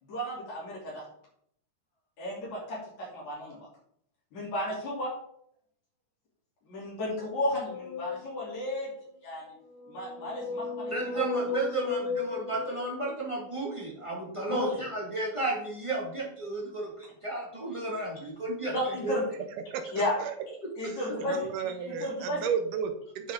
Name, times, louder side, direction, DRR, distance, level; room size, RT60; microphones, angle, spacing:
voice 1, 0.0-1.0 2.2-3.6 4.3-5.1 6.7-8.9 9.2-9.5 9.9-11.6 14.5-14.7 18.7-19.2 19.9-20.2 20.8-22.4, left 1 dB, 50° left, -5 dB, 4.3 m, -33 dB
sound 1, 7.2-8.8 9.7-13.6, left 4 dB, 85° left, 2.9 m, -35 dB
voice 2, 10.9-18.7 19.0-19.1 20.6-20.7, right 2 dB, 20° right, -4 dB, 0.7 m, -33 dB
voice 3, 19.7-20.3 20.8-23.3, right 7 dB, 75° right, 7 dB, 2.0 m, -33 dB
9.7 x 5.8 x 3.7 m, 0.70 s
omnidirectional pair, 4.3 m